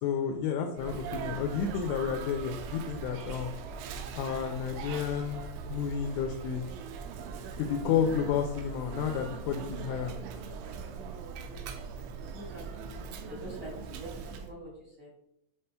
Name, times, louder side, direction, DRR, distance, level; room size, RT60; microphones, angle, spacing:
voice 1, 0.0-3.6 4.1-5.4 5.7-6.7 7.6-10.2, left 7 dB, 85° left, 3 dB, 2.5 m, -31 dB
Sneeze, 0.8-14.5, right 6 dB, 85° right, 3.0 m, -41 dB
voice 2, 10.9-14.2 14.5-15.2, right 1 dB, 55° right, -6 dB, 1.9 m, -46 dB
8.1 x 5.5 x 2.2 m, 0.74 s
omnidirectional pair, 5.5 m